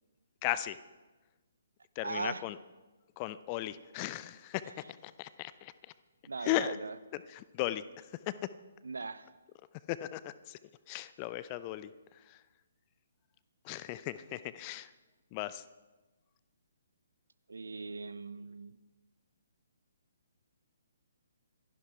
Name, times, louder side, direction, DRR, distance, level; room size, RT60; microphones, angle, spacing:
voice 1, 0.4-0.8 2.0-2.6 3.2-4.6 5.2-5.7 6.4-6.8 7.1-7.8 9.9-10.6 10.9-11.9 13.7-14.9 15.3-15.6, left 14 dB, 25° left, 15 dB, 0.6 m, -36 dB
voice 2, 2.0-2.4 4.6-4.8 6.2-7.0 8.8-9.3 17.5-18.8, right 4 dB, 65° right, 15 dB, 0.8 m, -39 dB
26.0 x 11.5 x 4.6 m, 1.2 s
figure-of-eight pair, 130°, 0 cm